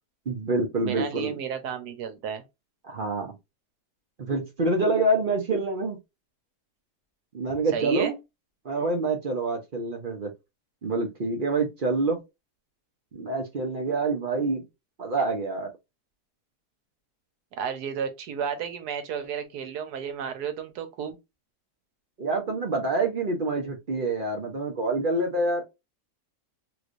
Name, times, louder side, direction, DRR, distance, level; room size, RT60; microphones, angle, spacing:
voice 1, 0.3-1.3 2.8-3.3 4.2-6.0 7.3-8.1 8.6-10.3 10.8-12.2 13.1-14.7 15.0-15.7 22.2-25.6, right 2 dB, 45° right, 0.7 m, -26 dB
voice 2, 0.8-2.4 7.7-8.1 17.6-21.2, right 7 dB, 75° right, 1.3 m, -32 dB
3.2 x 3.0 x 2.5 m
omnidirectional pair, 1.7 m